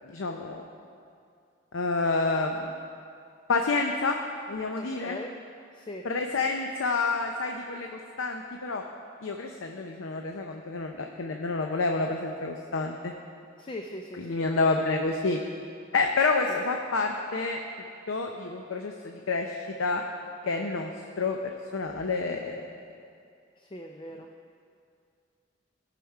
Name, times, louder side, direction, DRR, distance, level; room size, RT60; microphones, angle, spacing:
voice 1, 0.1-0.7 1.7-2.7 3.5-4.2 4.5-5.2 6.0-8.8 9.2-13.1 14.2-15.4 15.9-17.6 18.1-20.0 20.4-20.9 21.2-21.4 21.7-22.6, left 3 dB, 85° left, 3 dB, 0.6 m, -28 dB
voice 2, 4.8-5.3 5.7-6.1 13.6-15.0 16.5-16.6 23.6-24.3, left 1 dB, 25° left, 4 dB, 0.4 m, -40 dB
16.5 x 5.9 x 4.8 m, 2.4 s
head